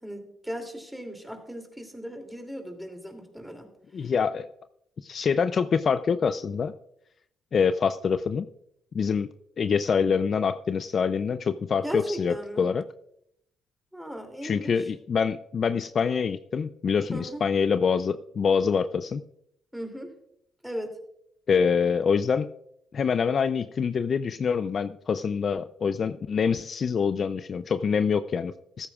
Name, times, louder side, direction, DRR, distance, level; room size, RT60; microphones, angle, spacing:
voice 1, 0.0-3.7 4.0-4.1 11.8-12.7 13.9-14.9 17.1-17.4 19.7-20.1 20.6-21.0, equal, 5° right, 4 dB, 2.7 m, -37 dB
voice 2, 3.9-4.5 5.0-6.7 7.5-8.5 8.9-9.3 9.6-12.8 14.4-19.2 21.5-22.5 22.9-28.9, left 6 dB, 50° left, 12 dB, 0.4 m, -25 dB
15.0 x 13.5 x 2.4 m, 0.76 s
cardioid pair, 90°, 0 cm